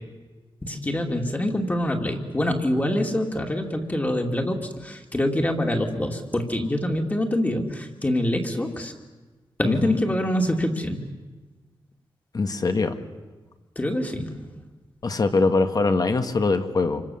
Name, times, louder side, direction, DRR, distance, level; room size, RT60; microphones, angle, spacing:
voice 1, 0.6-8.9 9.6-11.1 13.8-14.4, left 1 dB, 20° left, 2 dB, 2.6 m, -25 dB
voice 2, 9.6-10.0 12.3-12.9 15.0-17.0, left 3 dB, 45° left, 8 dB, 1.8 m, -22 dB
28.0 x 25.0 x 7.3 m, 1.3 s
wide cardioid pair, 135°, 9 cm